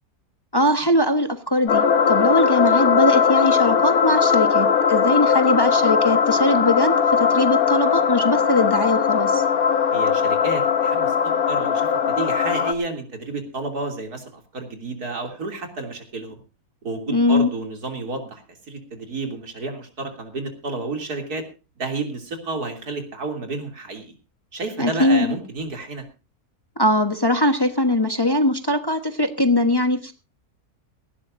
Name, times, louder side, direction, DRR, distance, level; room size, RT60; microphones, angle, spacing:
voice 1, 0.5-9.4 17.1-17.5 24.8-25.3 26.8-30.1, left 1 dB, 15° left, 7 dB, 1.1 m, -21 dB
sound 1, 1.7-12.7, left 6 dB, 70° left, 1.7 m, -19 dB
voice 2, 9.9-16.4 16.8-21.4 21.8-24.1 24.5-26.1, right 3 dB, 85° right, 4 dB, 3.6 m, -31 dB
18.5 x 16.5 x 2.6 m, 0.31 s
omnidirectional pair, 1.6 m